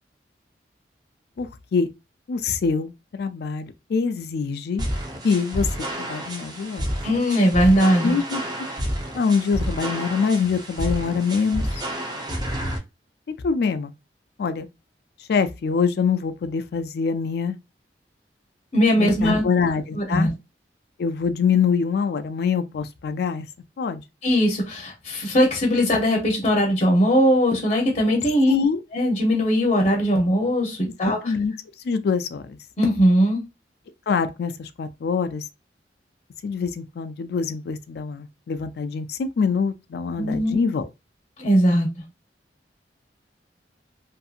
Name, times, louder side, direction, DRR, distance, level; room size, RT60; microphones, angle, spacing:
voice 1, 1.4-1.9 2.3-4.9 5.2-5.7 6.0-6.8 8.0-8.4 9.1-11.8 13.4-13.9 14.4-14.7 15.3-17.6 19.0-20.3 21.0-23.5 23.8-24.0 28.5-28.8 31.2-31.5 31.8-32.6 34.1-35.4 36.4-40.9, left 5 dB, 60° left, 0.3 m, -24 dB
sound 1, 4.8-12.8, equal, 25° right, 0.7 m, -29 dB
voice 2, 7.0-8.2 18.7-19.4 19.9-20.3 24.2-28.5 28.9-31.3 32.8-33.4 40.2-40.6 41.4-41.9, equal, 40° left, 0.8 m, -20 dB
2.6 x 2.6 x 2.4 m
head